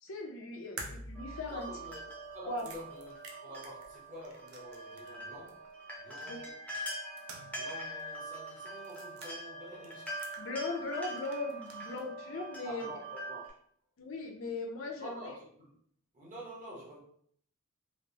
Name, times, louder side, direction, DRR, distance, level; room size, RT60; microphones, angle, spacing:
voice 1, 0.0-1.7 2.5-2.7 6.3-6.5 10.4-12.9 14.0-15.3, left 2 dB, 65° left, 0.5 m, -39 dB
sound 1, 0.8-5.2 5.5-5.6 6.7-7.7 8.0-8.1 8.8-9.3 9.8-10.9 11.2-12.1, right 2 dB, 90° right, 0.5 m, -49 dB
sound 2, 1.1-13.5, right 1 dB, 5° left, 0.6 m, -44 dB
voice 2, 1.4-2.0 2.3-5.7 6.0-6.6 7.4-10.2 12.6-13.4 15.0-15.7 16.1-17.0, equal, 40° right, 0.9 m, -47 dB
3.1 x 2.0 x 2.6 m
head